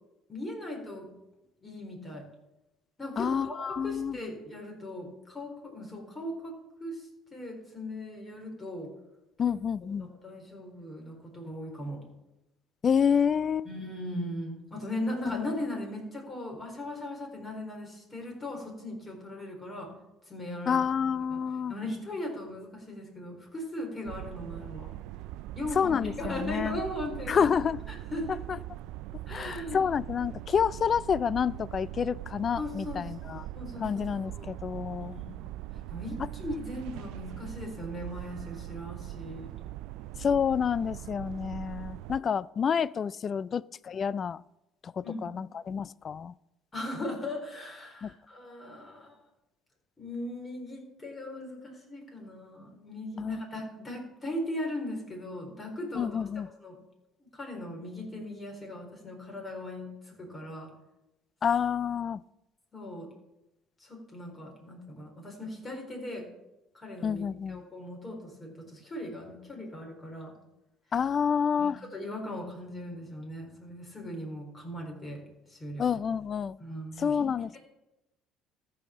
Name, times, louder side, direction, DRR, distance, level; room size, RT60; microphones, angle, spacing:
voice 1, 0.3-1.1 1.6-2.2 3.0-8.9 9.4-9.5 10.0-12.0 13.6-19.9 20.3-20.8 21.3-21.4 21.7-24.9 25.5-27.5 27.9-28.4 29.3-29.9 32.6-33.0 33.5-34.5 35.1-35.2 35.9-39.5 45.0-45.2 46.7-49.2 50.0-56.2 56.6-56.8 57.3-60.7 62.7-63.1 63.8-66.3 66.7-67.2 67.5-70.3 71.6-75.2 75.5-76.0 76.6-77.6, left 1 dB, 20° left, 4.0 m, -38 dB
voice 2, 3.2-4.2 9.4-10.1 12.8-13.7 15.3-15.5 20.7-21.8 25.8-26.8 27.3-27.8 28.5-28.6 29.3-33.5 33.8-35.2 40.2-44.4 44.8-46.3 48.0-48.1 53.2-53.4 55.9-56.5 61.4-62.2 67.0-67.6 70.9-71.8 75.8-76.6 77.0-77.6, left 7 dB, 40° left, 0.3 m, -28 dB
sound 1, 24.0-42.2, right 15 dB, 80° right, 0.3 m, -41 dB
14.0 x 4.8 x 7.2 m
cardioid pair, 110°, 0 cm